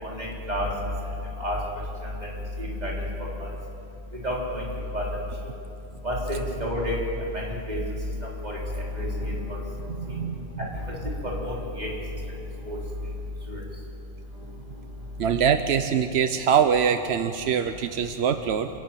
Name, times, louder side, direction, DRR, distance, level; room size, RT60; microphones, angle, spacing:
voice 1, 0.0-0.7 1.4-1.6 2.0-2.1 2.6-2.9 4.2-4.6 4.9-5.0 6.0-7.0 7.3-7.8 8.4-8.6 8.9-9.6 11.2-11.9 12.6-12.8 13.5-13.6, left 1 dB, 40° right, -4 dB, 4.0 m, -29 dB
voice 2, 9.9-10.5 15.2-18.7, right 7 dB, 90° right, 9 dB, 1.0 m, -23 dB
27.5 x 11.5 x 9.0 m, 2.8 s
omnidirectional pair, 1.1 m